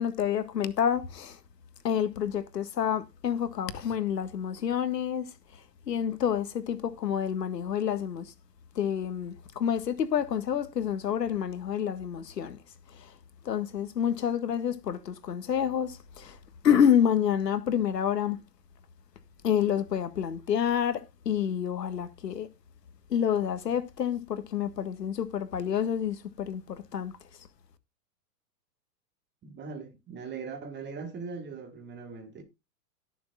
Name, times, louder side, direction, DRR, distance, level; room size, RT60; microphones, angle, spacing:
voice 1, 0.0-1.4 1.8-5.3 5.9-8.3 8.8-12.6 12.9-13.1 13.5-16.4 16.6-18.4 19.4-22.5 23.1-27.1, left 8 dB, 80° left, 1.7 m, -28 dB
voice 2, 29.4-32.4, right 5 dB, 20° right, 2.5 m, -40 dB
18.0 x 6.9 x 2.4 m
hypercardioid pair, 115°, 49 cm